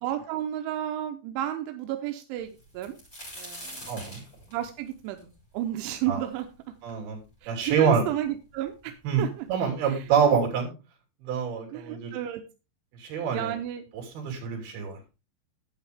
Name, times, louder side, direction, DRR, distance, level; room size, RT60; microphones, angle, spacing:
voice 1, 0.0-3.0 3.3-3.9 4.5-6.5 7.4-9.5 9.8-10.1 11.7-12.4 13.3-13.8, right 12 dB, 90° right, 6 dB, 3.2 m, -32 dB
sound 1, 2.6-6.4 6.9-7.0 7.8-7.9 8.1-8.8 9.7-9.8 10.2-10.4, equal, 20° left, 6.7 m, -44 dB
voice 2, 3.9-4.2 6.1-6.2 6.8-7.2 7.5-8.1 9.0-9.2 9.5-10.7 11.2-12.2 13.0-13.5 14.1-15.0, right 6 dB, 60° right, 1 dB, 4.9 m, -26 dB
11.5 x 9.0 x 3.5 m, 0.30 s
omnidirectional pair, 5.3 m